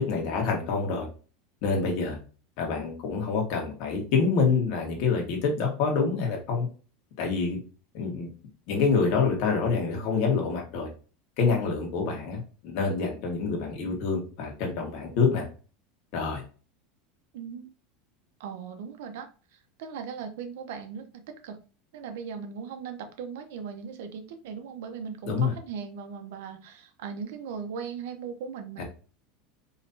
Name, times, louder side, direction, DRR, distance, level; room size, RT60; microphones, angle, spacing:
voice 1, 0.1-1.1 1.6-2.2 2.6-6.7 7.2-7.6 7.9-8.3 8.7-10.9 11.4-15.4 16.1-16.4 25.3-25.5 28.8-28.9, left 5 dB, 55° left, 1 dB, 1.5 m, -26 dB
voice 2, 17.3-17.7 18.4-21.6 21.9-28.8, right 6 dB, 75° right, 6 dB, 0.8 m, -38 dB
4.0 x 3.1 x 2.7 m, 0.37 s
supercardioid pair, 135°, 0 cm